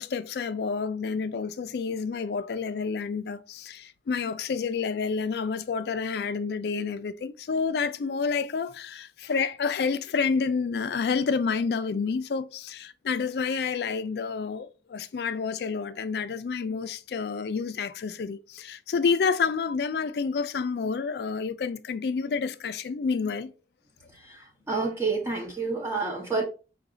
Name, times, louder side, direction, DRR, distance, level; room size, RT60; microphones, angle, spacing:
voice 1, 0.0-23.5, left 5 dB, 60° left, 0.3 m, -29 dB
voice 2, 24.1-26.4, right 4 dB, 15° right, 0.6 m, -29 dB
4.8 x 2.3 x 3.7 m
head